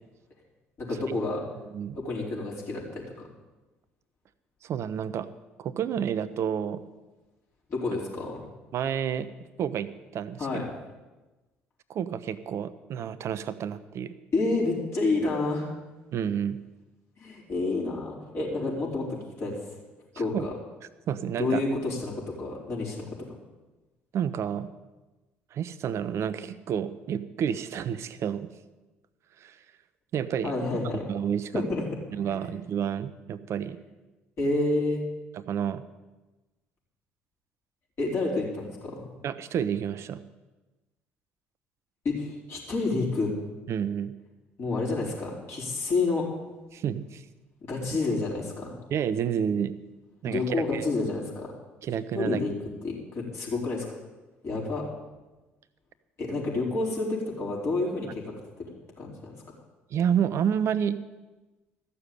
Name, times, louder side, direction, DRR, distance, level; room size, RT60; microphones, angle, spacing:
voice 1, 0.8-1.4 1.9-3.3 7.7-8.5 10.4-10.7 14.3-15.7 17.2-19.1 19.4-19.7 20.2-20.5 21.4-22.1 22.4-23.0 30.4-31.0 31.5-31.8 32.3-32.4 34.4-35.0 38.0-39.1 42.0-43.3 44.6-46.3 47.6-48.8 50.2-51.5 52.1-52.5 52.8-53.8 54.4-54.9 56.2-58.2 59.0-59.3, left 3 dB, 45° left, -3 dB, 4.7 m, -29 dB
voice 2, 4.6-5.3 5.6-6.8 8.7-9.3 9.6-10.4 11.9-14.1 16.1-16.6 20.1-20.4 21.1-21.6 24.1-24.7 25.5-28.5 29.4-29.6 30.1-30.5 31.1-31.6 32.1-33.8 35.5-35.8 39.2-40.2 43.7-44.1 46.7-47.2 48.9-49.7 50.2-50.8 51.8-52.4 59.9-61.0, right 8 dB, 50° right, 14 dB, 0.8 m, -29 dB
14.0 x 7.0 x 8.6 m, 1.1 s
figure-of-eight pair, 55°, 6 cm